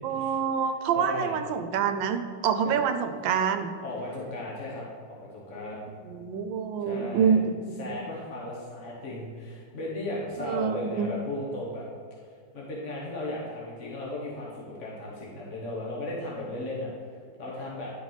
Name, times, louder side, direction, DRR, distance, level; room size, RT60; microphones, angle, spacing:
voice 1, 0.0-3.7 6.0-7.5 7.9-8.0 10.4-11.1, right 7 dB, 85° right, 8 dB, 1.4 m, -26 dB
voice 2, 1.0-1.3 2.6-2.7 3.8-5.9 6.8-7.3 7.8-11.8 12.5-17.9, left 1 dB, 45° left, -5 dB, 1.6 m, -36 dB
11.5 x 4.7 x 4.0 m, 2.1 s
omnidirectional pair, 2.0 m